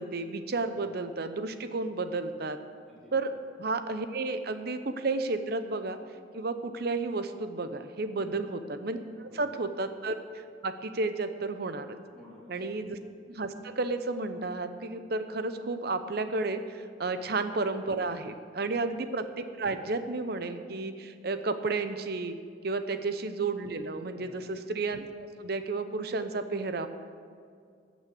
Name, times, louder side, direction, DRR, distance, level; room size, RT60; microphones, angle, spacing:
voice 1, 0.0-2.6 3.1-3.3 3.6-6.0 6.3-12.0 12.5-13.0 13.3-22.4 22.6-26.9, right 3 dB, 55° right, 9 dB, 0.8 m, -32 dB
voice 2, 2.9-3.2 8.2-8.3 9.1-9.5 12.0-12.9 18.6-18.7 22.8-23.0 24.1-24.5, left 1 dB, 5° left, -9 dB, 3.4 m, -54 dB
15.0 x 6.3 x 7.7 m, 2.2 s
head